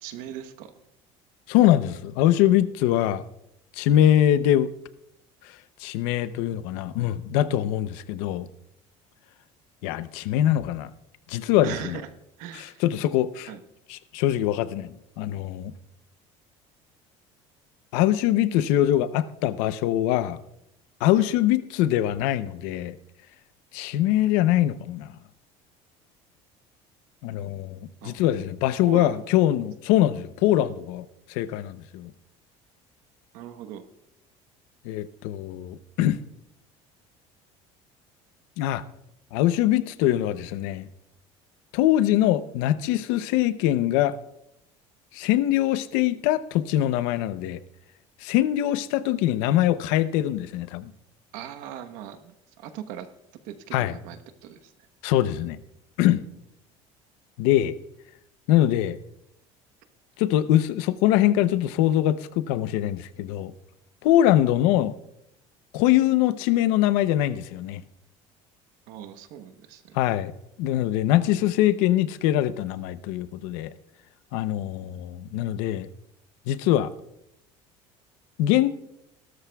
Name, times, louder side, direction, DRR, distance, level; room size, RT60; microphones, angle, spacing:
voice 1, 0.0-0.7 11.6-12.1 12.4-12.8 13.5-13.6 21.1-21.3 28.0-28.2 28.9-29.2 33.3-33.8 51.3-53.1 53.4-54.7 68.9-70.0, right 9 dB, 80° right, 1.1 m, -39 dB
voice 2, 1.5-3.2 3.8-4.7 5.8-8.5 9.8-10.9 11.3-12.0 12.5-13.5 13.9-15.7 17.9-20.4 21.0-23.0 23.7-25.1 27.2-32.1 34.8-36.2 38.6-38.8 39.3-40.9 41.7-44.1 45.1-47.6 48.2-50.9 53.7-53.9 55.0-55.6 56.0-56.2 57.4-57.7 58.5-59.0 60.2-63.5 64.0-64.9 65.7-67.8 69.9-70.3 70.6-73.7 74.3-75.9 76.5-76.9 78.4-78.7, left 13 dB, 85° left, 0.7 m, -23 dB
19.0 x 13.0 x 2.3 m
cardioid pair, 145°, 13 cm